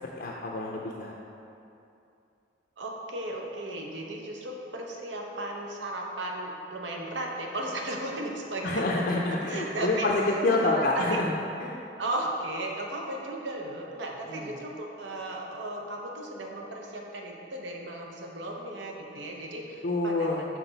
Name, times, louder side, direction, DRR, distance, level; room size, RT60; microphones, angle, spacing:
voice 1, 0.1-1.1 8.6-11.3 11.6-11.8 14.3-14.5 19.8-20.5, left 2 dB, 55° left, -2 dB, 0.5 m, -27 dB
voice 2, 2.8-8.8 9.5-10.1 10.5-11.2 12.0-20.3, right 1 dB, 85° right, 0 dB, 0.8 m, -35 dB
5.9 x 4.5 x 3.9 m, 2.7 s
head